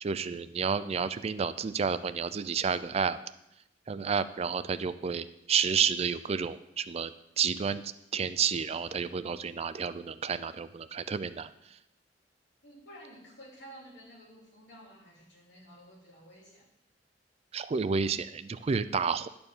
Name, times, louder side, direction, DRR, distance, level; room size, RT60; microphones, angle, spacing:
voice 1, 0.0-3.2 3.9-11.5 17.5-19.3, right 6 dB, 35° right, 13 dB, 0.4 m, -30 dB
voice 2, 12.6-16.7, equal, 80° left, -1 dB, 2.6 m, -52 dB
11.0 x 4.4 x 7.1 m, 0.85 s
head